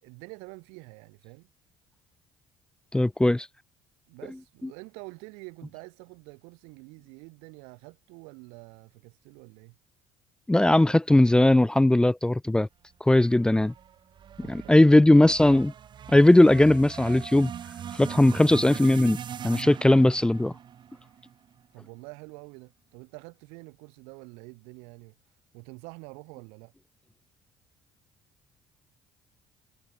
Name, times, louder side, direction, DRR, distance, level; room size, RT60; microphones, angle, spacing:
voice 1, 0.0-1.5 4.1-9.8 14.4-15.3 21.7-25.2 25.5-26.7, right 33 dB, 85° right, 3.5 m, -47 dB
voice 2, 2.9-3.5 10.5-12.7 13.1-13.7 14.4-15.7 16.1-17.5 17.9-19.2 19.4-20.5, left 1 dB, 10° left, 0.7 m, -19 dB
sound 1, 13.3-21.7, right 9 dB, 50° right, 2.1 m, -41 dB
supercardioid pair, 75°, 10 cm